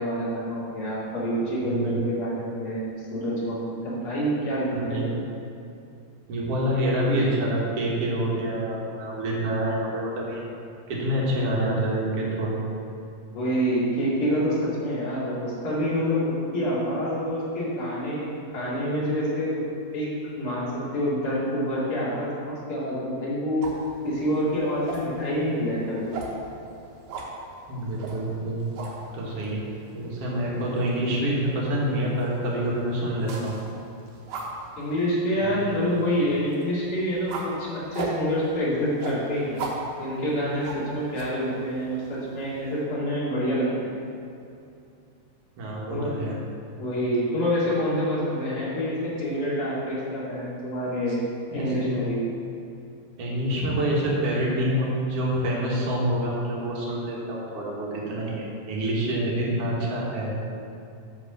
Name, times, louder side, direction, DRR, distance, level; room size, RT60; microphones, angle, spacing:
voice 1, 0.0-2.8 3.1-5.1 13.3-19.6 19.9-20.1 20.4-23.6 24.0-26.1 34.8-39.6 40.0-43.9 45.9-46.1 46.8-51.2 51.5-52.2, equal, 40° left, -8 dB, 3.0 m, -27 dB
voice 2, 1.6-2.0 4.7-5.0 6.3-10.4 10.9-12.6 27.7-28.6 29.1-29.6 29.9-33.6 35.4-35.6 45.6-46.4 51.5-51.9 53.2-60.3, right 1 dB, 50° right, -4 dB, 2.2 m, -27 dB
sound 1, 23.6-42.8, right 3 dB, 70° right, 2.6 m, -40 dB
9.4 x 4.9 x 6.9 m, 2.5 s
omnidirectional pair, 4.1 m